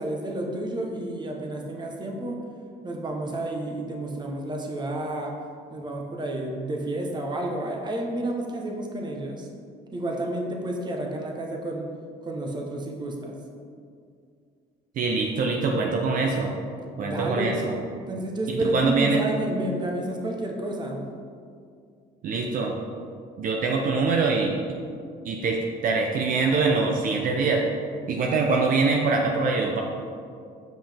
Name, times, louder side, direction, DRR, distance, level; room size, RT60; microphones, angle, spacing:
voice 1, 0.0-2.4 2.8-5.3 5.7-9.5 9.9-11.9 12.2-13.4 17.0-17.5 18.1-21.0, right 1 dB, 25° right, 1 dB, 1.0 m, -30 dB
voice 2, 15.0-16.5 17.0-17.7 18.6-19.2 22.2-22.7 23.4-24.6 25.2-27.6 28.1-29.8, right 4 dB, 55° right, 1 dB, 0.7 m, -24 dB
7.6 x 5.5 x 3.5 m, 2.3 s
cardioid pair, 110°, 17 cm